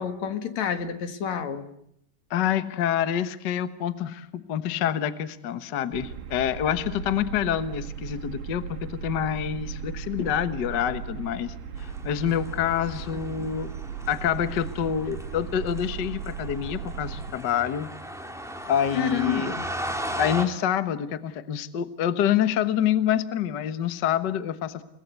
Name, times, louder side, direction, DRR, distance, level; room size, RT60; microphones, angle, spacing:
voice 1, 0.0-1.7 13.1-13.5 18.9-19.7, left 8 dB, 60° left, 9 dB, 2.9 m, -30 dB
voice 2, 2.3-13.7 14.1-17.9 18.7-19.5 20.2-24.8, left 9 dB, 80° left, 12 dB, 0.9 m, -27 dB
sound 1, 5.9-17.3, right 7 dB, 85° right, 3.4 m, -37 dB
sound 2, 11.8-20.5, equal, ahead, 2.4 m, -37 dB
30.0 x 20.0 x 8.3 m, 0.76 s
omnidirectional pair, 3.9 m